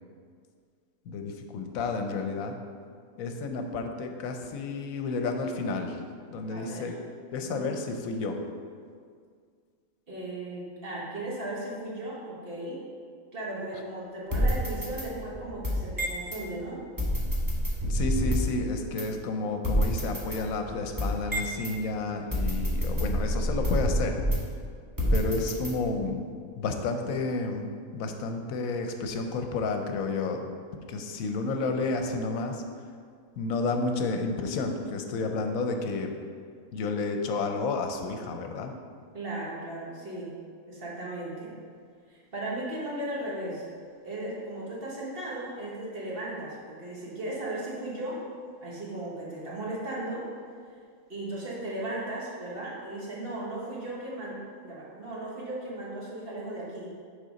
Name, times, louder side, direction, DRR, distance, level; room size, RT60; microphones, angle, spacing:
voice 1, 1.1-2.6 3.2-6.0 6.3-7.0 7.3-8.4 17.9-24.2 25.1-30.5 30.9-32.6 33.4-36.1 36.7-38.7, left 3 dB, 80° left, 5 dB, 1.0 m, -31 dB
voice 2, 6.5-6.9 7.4-7.7 10.1-12.8 13.3-16.8 39.1-40.4 40.7-41.5 42.1-43.7 44.0-48.2 48.6-50.2 51.1-56.9, right 1 dB, 45° right, -5 dB, 1.4 m, -36 dB
sound 1, 14.3-16.4 17.0-18.6 19.0-19.1 19.6-21.7 22.3-24.6 25.0-26.1, equal, 15° right, 0.9 m, -28 dB
6.5 x 3.9 x 5.0 m, 2.1 s
omnidirectional pair, 1.5 m